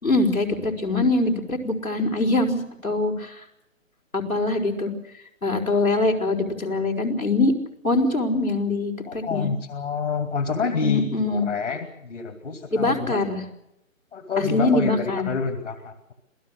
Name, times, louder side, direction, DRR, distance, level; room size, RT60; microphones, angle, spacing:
voice 1, 0.0-3.4 4.1-4.9 5.4-7.5 7.8-9.5 10.8-11.5 12.7-13.4 14.4-15.2, left 2 dB, 90° left, 0 dB, 5.0 m, -23 dB
voice 2, 9.1-13.2 14.1-16.1, left 5 dB, 60° left, 7 dB, 2.5 m, -28 dB
27.0 x 18.0 x 6.5 m, 0.84 s
figure-of-eight pair, 140°, 40 cm